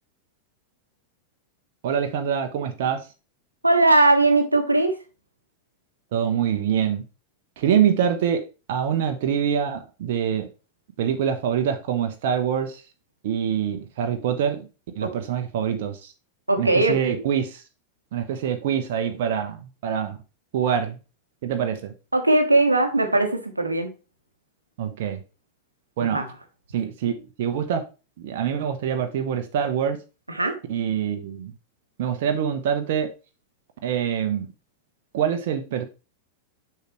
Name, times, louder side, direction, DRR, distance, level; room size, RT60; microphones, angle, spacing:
voice 1, 1.8-3.1 6.1-7.0 7.6-10.5 11.0-12.8 13.2-14.7 14.9-16.1 16.6-17.6 18.1-20.2 20.5-21.0 21.4-21.9 24.8-25.2 26.0-26.2 26.7-27.9 28.2-30.0 30.7-31.5 32.0-33.1 33.8-34.5 35.1-35.9, right 8 dB, 55° right, 0.9 m, -25 dB
voice 2, 3.6-5.0 15.0-15.1 16.5-17.2 22.1-23.9 26.0-26.3 30.3-30.6, right 2 dB, 85° right, 1.1 m, -20 dB
6.7 x 5.8 x 3.1 m
figure-of-eight pair, 90°, 0 cm